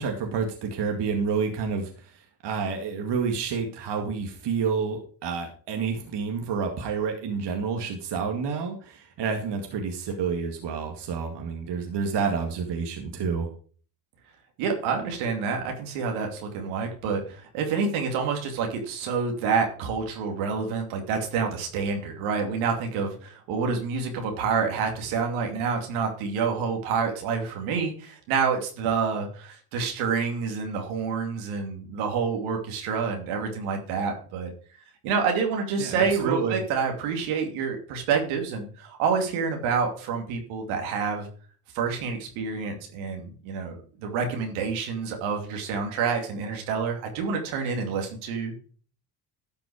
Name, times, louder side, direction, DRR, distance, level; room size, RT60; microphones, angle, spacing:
voice 1, 0.0-13.5 35.8-36.6, right 5 dB, 55° right, 3 dB, 2.2 m, -29 dB
voice 2, 14.6-34.5 35.0-41.3 41.7-48.6, right 5 dB, 80° right, 3 dB, 2.8 m, -28 dB
12.5 x 6.0 x 4.9 m, 0.42 s
supercardioid pair, 70°, 48 cm